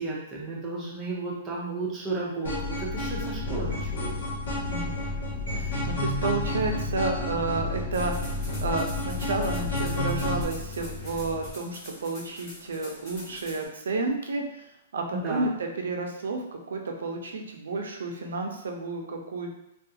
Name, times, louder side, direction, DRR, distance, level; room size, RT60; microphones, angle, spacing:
voice 1, 0.0-4.2 15.1-15.5, right 3 dB, 10° right, -5 dB, 0.5 m, -33 dB
sound 1, 2.4-10.4, left 2 dB, 80° left, 1.2 m, -31 dB
sound 2, 3.3-11.5, left 2 dB, 55° left, 0.8 m, -38 dB
voice 2, 4.7-5.0 5.5-19.5, right 3 dB, 90° right, 3 dB, 0.5 m, -31 dB
sound 3, 7.9-13.7, equal, 15° left, 0.8 m, -46 dB
2.4 x 2.3 x 2.7 m, 0.84 s
hypercardioid pair, 180°, 0 cm